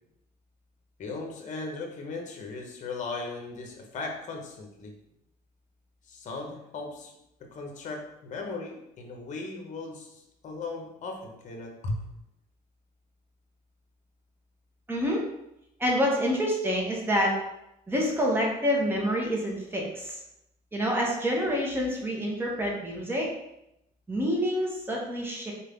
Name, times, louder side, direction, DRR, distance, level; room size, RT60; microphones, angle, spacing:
voice 1, 1.0-5.0 6.0-12.0, left 3 dB, 45° left, 2 dB, 0.9 m, -37 dB
voice 2, 14.9-15.2 15.8-17.4 17.9-20.2 20.7-23.3 24.1-25.5, equal, 15° right, -2 dB, 1.1 m, -27 dB
4.1 x 2.7 x 3.6 m, 0.83 s
cardioid pair, 110°, 17 cm